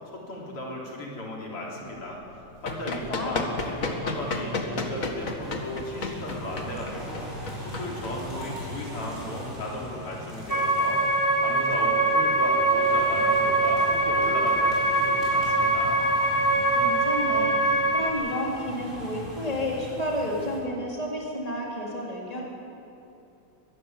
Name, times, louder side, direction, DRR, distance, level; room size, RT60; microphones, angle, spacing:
voice 1, 0.1-2.2 2.6-16.0, left 1 dB, 90° left, -2 dB, 4.8 m, -36 dB
Run, 2.3-8.7, left 3 dB, 40° left, 2.0 m, -33 dB
voice 2, 2.9-3.4 16.8-22.4, left 1 dB, 15° left, -2 dB, 3.7 m, -31 dB
sound 1, 3.4-20.6, equal, 25° right, 7.0 m, -40 dB
sound 2, 10.5-18.1, right 2 dB, 10° right, 1.7 m, -23 dB
23.5 x 15.0 x 9.9 m, 2.8 s
omnidirectional pair, 2.4 m